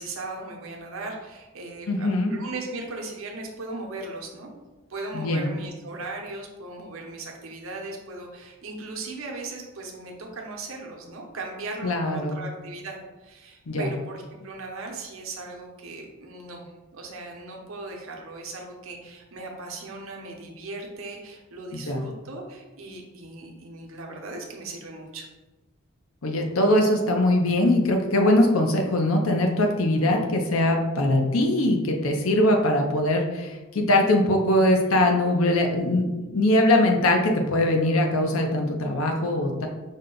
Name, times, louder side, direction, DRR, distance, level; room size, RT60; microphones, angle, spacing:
voice 1, 0.0-4.5 4.9-25.3 34.7-35.0, right 2 dB, 75° right, 1 dB, 0.8 m, -38 dB
voice 2, 1.9-2.3 5.1-5.5 11.8-12.4 13.7-13.9 21.7-22.0 26.2-39.7, left 1 dB, 80° left, 2 dB, 0.7 m, -22 dB
5.3 x 2.2 x 3.8 m, 1.1 s
head